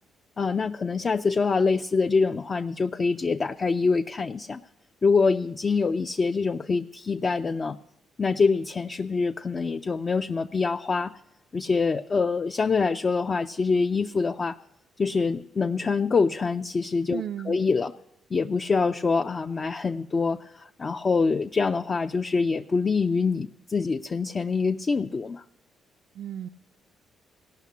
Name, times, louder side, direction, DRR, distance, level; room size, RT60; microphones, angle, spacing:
voice 1, 0.4-4.6 5.0-7.8 8.2-11.1 11.5-14.6 15.0-17.9 18.3-25.4, left 4 dB, 35° left, 5 dB, 0.4 m, -25 dB
voice 2, 17.1-17.6 26.2-26.5, right 10 dB, 70° right, 4 dB, 0.4 m, -34 dB
17.0 x 5.8 x 8.3 m, 0.86 s
cardioid pair, 90°, 0 cm